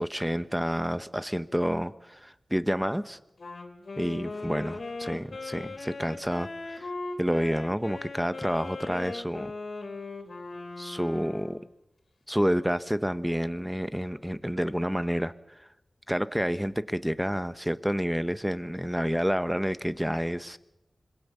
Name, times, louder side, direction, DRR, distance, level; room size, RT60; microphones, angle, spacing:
voice 1, 0.0-3.2 4.0-6.9 7.2-9.5 10.8-11.6 12.3-15.3 15.6-15.7 16.1-20.6, equal, 5° right, 13 dB, 1.0 m, -29 dB
Wind instrument woodwind instrument, 3.4-11.7, left 3 dB, 65° left, 3.3 m, -39 dB
26.0 x 21.0 x 6.9 m, 0.88 s
cardioid pair, 55°, 0 cm